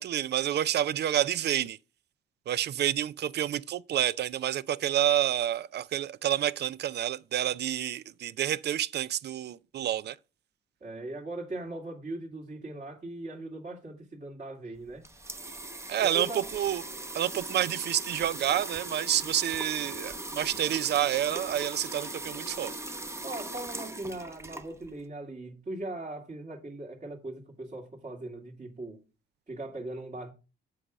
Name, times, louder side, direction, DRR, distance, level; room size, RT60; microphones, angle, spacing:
voice 1, 0.0-1.8 2.5-10.2 15.9-16.8 17.1-22.7, right 11 dB, 55° right, 0.5 m, -29 dB
voice 2, 10.8-15.0 16.0-16.5 23.2-29.0 29.5-30.3, right 2 dB, 35° right, 2.2 m, -39 dB
sound 1, 14.8-25.0, right 2 dB, 15° right, 0.9 m, -39 dB
7.7 x 4.9 x 6.2 m
cardioid pair, 90°, 20 cm